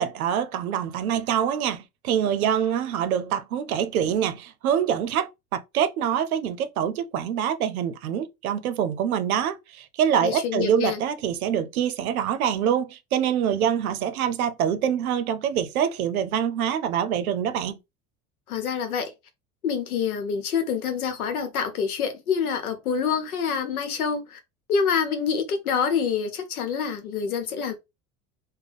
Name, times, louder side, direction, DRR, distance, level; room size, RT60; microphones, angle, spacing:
voice 1, 0.0-17.8, right 9 dB, 85° right, 0.6 m, -25 dB
voice 2, 10.2-11.0 18.5-19.1 19.6-24.4 24.7-27.7, left 6 dB, 90° left, 0.9 m, -26 dB
3.5 x 2.2 x 3.4 m
hypercardioid pair, 75°, 42 cm